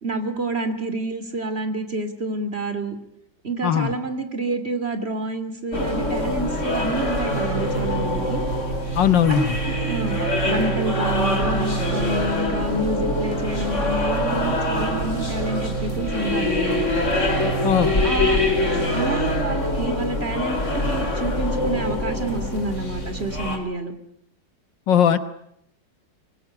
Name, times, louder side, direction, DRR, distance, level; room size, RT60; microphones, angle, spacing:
voice 1, 0.0-3.0 3.4-8.4 9.3-16.9 18.0-18.4 18.9-23.9, right 2 dB, 35° right, 9 dB, 2.9 m, -28 dB
voice 2, 3.6-3.9 9.0-9.6 17.6-18.0 24.9-25.2, left 9 dB, 80° left, 12 dB, 1.9 m, -18 dB
sound 1, 5.7-23.6, left 1 dB, 40° left, 4.4 m, -24 dB
24.5 x 21.5 x 9.9 m, 0.75 s
omnidirectional pair, 2.0 m